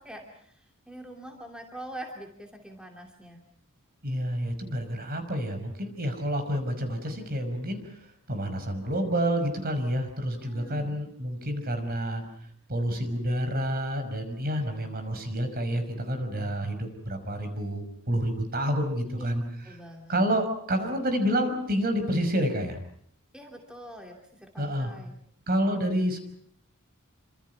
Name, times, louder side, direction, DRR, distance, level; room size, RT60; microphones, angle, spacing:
voice 1, 0.0-3.4 10.3-11.0 19.1-19.3 19.6-20.2 23.3-25.2, right 1 dB, 5° right, 2 dB, 2.7 m, -44 dB
voice 2, 4.0-7.8 8.3-12.2 12.7-19.4 20.1-22.8 24.6-24.9 25.5-26.2, equal, 45° right, 8 dB, 5.5 m, -29 dB
28.0 x 26.0 x 5.7 m, 0.66 s
head